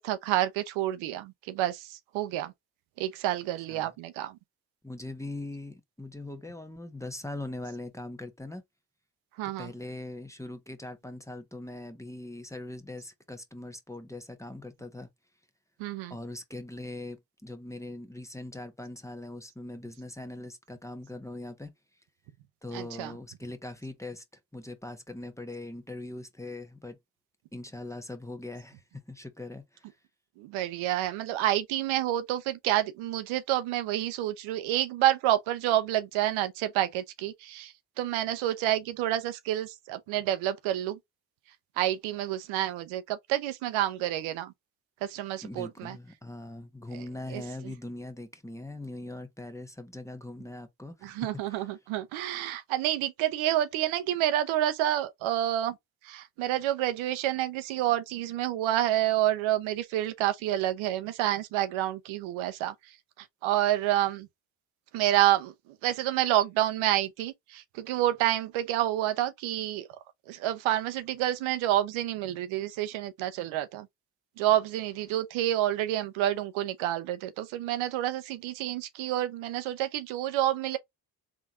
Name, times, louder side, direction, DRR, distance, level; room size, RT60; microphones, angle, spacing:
voice 1, 0.0-2.5 3.0-4.3 9.4-9.7 15.8-16.2 22.7-23.2 30.4-37.7 38.0-41.0 41.8-44.5 45.1-46.0 46.9-47.4 51.0-55.7 56.1-62.7 63.4-64.3 64.9-65.5 65.8-69.9 70.3-73.9 74.4-80.8, right 13 dB, 70° right, 0.8 m, -28 dB
voice 2, 3.6-3.9 4.8-8.6 9.6-15.1 16.1-21.7 22.6-24.2 24.5-27.0 27.5-30.0 45.4-51.8, left 2 dB, 5° left, 1.0 m, -41 dB
3.6 x 2.9 x 3.6 m
hypercardioid pair, 55°, 49 cm